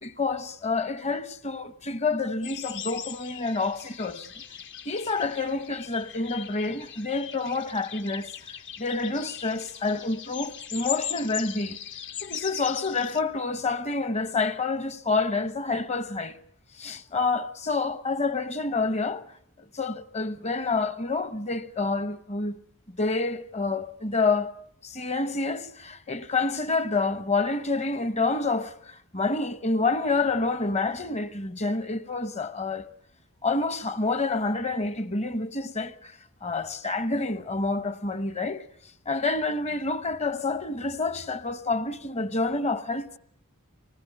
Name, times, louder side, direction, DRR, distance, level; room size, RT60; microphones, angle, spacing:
voice 1, 0.0-4.3 4.8-11.8 12.2-16.4 16.8-19.3 19.6-22.6 22.9-32.9 33.4-38.7 39.1-43.2, left 3 dB, 30° left, 1.0 m, -28 dB
sound 1, 2.4-13.2, left 9 dB, 55° left, 1.1 m, -39 dB
24.5 x 20.0 x 9.3 m
head